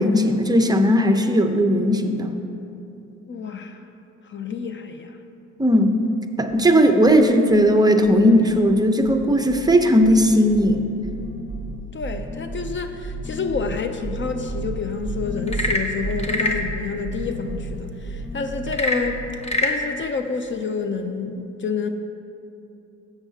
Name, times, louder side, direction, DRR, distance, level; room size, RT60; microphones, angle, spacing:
voice 1, 0.0-2.3 5.6-6.0 6.4-10.9, equal, 15° right, 5 dB, 0.7 m, -17 dB
voice 2, 3.3-3.8 4.2-5.2 11.9-21.9, left 5 dB, 40° left, 7 dB, 0.6 m, -29 dB
sound 1, 6.5-6.7 7.0-7.8 8.0-8.8 9.0-19.3, right 2 dB, 5° left, 1.7 m, -33 dB
Frog / Percussion / Wood, 15.4-16.7 18.7-19.8, left 2 dB, 20° left, 1.0 m, -24 dB
14.0 x 8.1 x 2.8 m, 2.8 s
cardioid pair, 90°, 30 cm